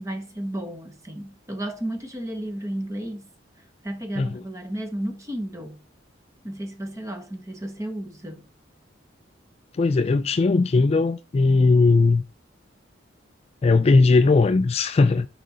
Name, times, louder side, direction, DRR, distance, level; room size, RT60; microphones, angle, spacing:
voice 1, 0.0-3.3 3.8-5.8 6.4-8.5, right 1 dB, 15° right, 1.2 m, -33 dB
voice 2, 9.7-12.2 13.6-15.3, left 3 dB, 35° left, 0.3 m, -18 dB
6.3 x 5.1 x 3.9 m
head